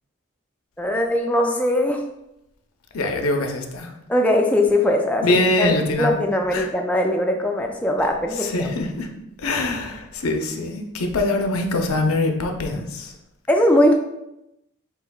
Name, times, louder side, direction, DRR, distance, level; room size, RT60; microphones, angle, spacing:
voice 1, 0.8-2.0 3.0-3.1 4.1-5.2 5.6-5.7 6.0-8.7 13.5-14.0, left 1 dB, 5° left, 2 dB, 0.3 m, -20 dB
voice 2, 2.9-3.9 5.2-6.2 6.5-6.7 8.4-9.1 9.4-13.1, left 2 dB, 85° left, 4 dB, 0.6 m, -23 dB
8.1 x 2.8 x 2.3 m, 0.87 s
head